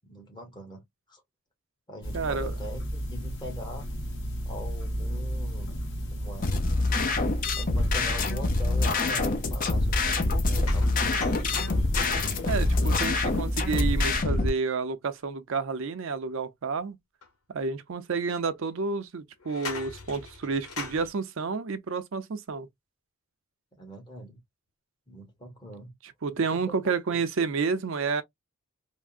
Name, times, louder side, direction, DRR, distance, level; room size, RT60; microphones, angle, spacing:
voice 1, 0.1-1.2 1.9-3.9 4.4-5.7 6.1-6.5 7.6-10.2 10.5-11.5 23.7-24.4 25.1-25.9 26.5-27.2, equal, 20° left, 1.0 m, -43 dB
sound 1, 2.0-14.2, equal, 55° left, 1.2 m, -34 dB
voice 2, 2.1-2.5 12.5-17.0 17.5-22.7 26.2-28.2, right 4 dB, 60° right, 0.5 m, -30 dB
sound 2, 6.4-14.5, left 3 dB, 35° left, 0.5 m, -26 dB
sound 3, 10.6-14.4 17.2-17.3 18.1-18.2 19.4-21.1, left 4 dB, 80° left, 1.0 m, -41 dB
3.4 x 2.0 x 2.4 m
head